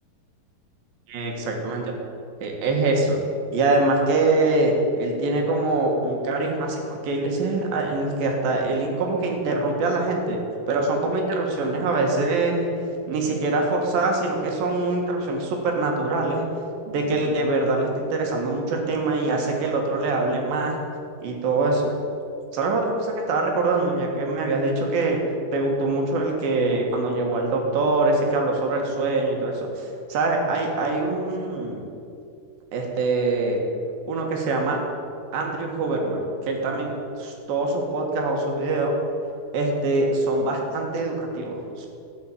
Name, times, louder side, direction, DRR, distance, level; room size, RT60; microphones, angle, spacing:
voice 1, 1.1-1.9 2.4-3.2 3.5-10.4 10.7-12.7 13.1-16.5 16.9-20.8 21.2-21.9 22.5-25.2 25.5-31.8 32.7-33.6 34.1-34.8 35.3-39.0 39.5-41.9, right 2 dB, 70° right, 1 dB, 3.3 m, -24 dB
13.5 x 5.7 x 8.4 m, 2.5 s
omnidirectional pair, 4.3 m